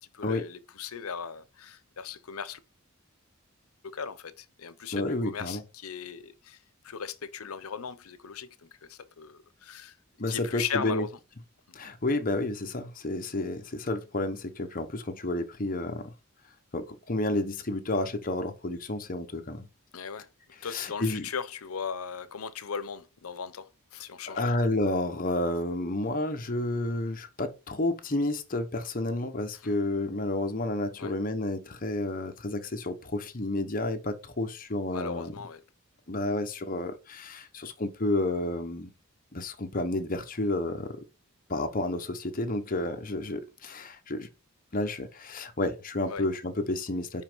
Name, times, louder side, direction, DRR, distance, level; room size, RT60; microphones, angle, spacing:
voice 1, 0.0-2.6 3.8-6.6 6.8-10.0 10.3-11.1 11.7-11.8 19.9-20.3 20.6-24.6 29.5-29.7 31.0-31.1 34.9-35.6 46.1-46.3, left 6 dB, 85° left, 0.7 m, -38 dB
voice 2, 4.9-5.6 10.2-11.0 11.7-16.1 16.7-19.7 20.7-21.3 24.3-35.3 36.1-38.9 39.3-41.0 41.5-44.3 44.7-47.2, left 2 dB, 40° left, 1.0 m, -30 dB
5.7 x 5.2 x 4.6 m
head